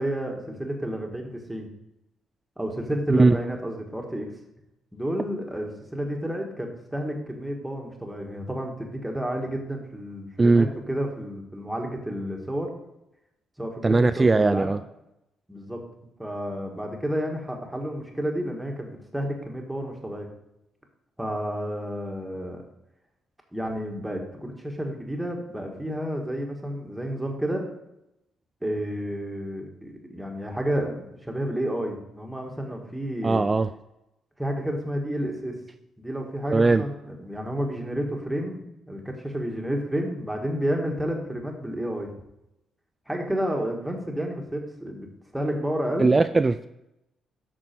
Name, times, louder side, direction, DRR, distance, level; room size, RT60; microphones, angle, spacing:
voice 1, 0.0-1.7 2.6-4.3 4.9-12.7 13.6-14.7 15.5-15.8 16.2-20.3 21.2-22.6 23.5-27.6 28.6-33.4 34.4-35.5 36.0-42.1 43.1-46.1, equal, 5° right, 1 dB, 1.7 m, -30 dB
voice 2, 13.8-14.8 33.2-33.7 36.5-36.9 46.0-46.7, right 3 dB, 25° right, 11 dB, 0.3 m, -19 dB
8.7 x 6.1 x 4.5 m, 0.87 s
cardioid pair, 90°, 0 cm